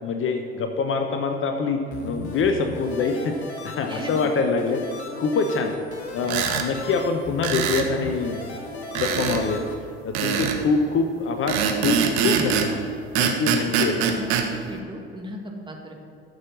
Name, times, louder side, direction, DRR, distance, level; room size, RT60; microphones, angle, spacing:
voice 1, 0.0-4.8 5.2-5.8 6.1-8.6 8.9-9.6 10.0-12.8 13.1-14.1, left 4 dB, 40° left, 6 dB, 1.0 m, -25 dB
sound 1, 1.9-9.7, left 3 dB, 80° left, 1.4 m, -36 dB
voice 2, 3.9-4.3 14.1-15.4 15.7-15.9, right 1 dB, 15° right, 1 dB, 2.2 m, -36 dB
sound 2, 6.2-6.7 7.4-7.9 8.9-9.4 10.1-10.6 11.5-12.7 13.1-14.5, right 7 dB, 55° right, 1.3 m, -23 dB
13.0 x 6.7 x 6.1 m, 2.4 s
hypercardioid pair, 70°, 32 cm